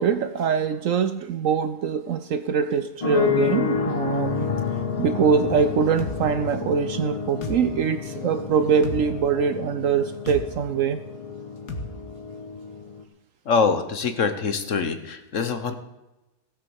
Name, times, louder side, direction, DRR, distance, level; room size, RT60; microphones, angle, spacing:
voice 1, 0.0-4.5 5.0-11.0, right 6 dB, 65° right, 11 dB, 0.9 m, -23 dB
sound 1, 3.0-13.0, left 6 dB, 25° left, 0.9 m, -29 dB
sound 2, 6.0-6.2 7.4-7.6 8.8-9.0 10.3-10.5 11.7-11.9, left 2 dB, 75° left, 2.0 m, -31 dB
voice 2, 13.4-15.7, left 5 dB, 55° left, 9 dB, 1.3 m, -24 dB
16.5 x 7.4 x 7.1 m, 0.98 s
omnidirectional pair, 1.7 m